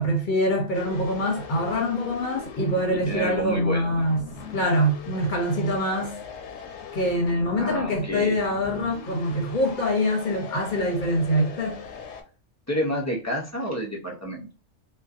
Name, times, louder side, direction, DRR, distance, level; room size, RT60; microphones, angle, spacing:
voice 1, 0.0-4.2 4.5-6.2 6.9-11.8, equal, 50° left, 0.8 m, -24 dB
sound 1, 0.7-12.2, left 6 dB, 75° left, 0.9 m, -41 dB
voice 2, 2.9-4.1 7.6-8.4 12.7-14.5, equal, 25° left, 0.4 m, -29 dB
2.6 x 2.2 x 2.4 m
omnidirectional pair, 1.2 m